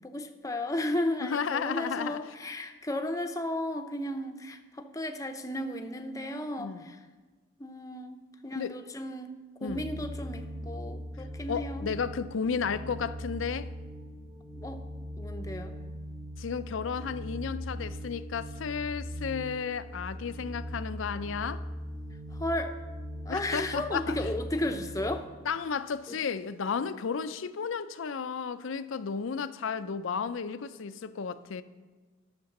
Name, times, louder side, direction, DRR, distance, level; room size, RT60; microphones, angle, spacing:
voice 1, 0.0-7.0 7.6-11.9 14.6-14.8 15.2-15.8 22.3-22.8 23.2-25.3 26.1-26.2, left 1 dB, 15° left, 0.6 m, -34 dB
voice 2, 1.2-2.2 6.6-6.8 8.5-8.7 9.6-9.9 11.5-13.7 16.4-21.6 23.3-24.2 25.5-31.6, left 6 dB, 80° left, 0.5 m, -33 dB
sound 1, 9.7-25.2, equal, 20° right, 0.8 m, -40 dB
10.5 x 6.7 x 6.6 m
head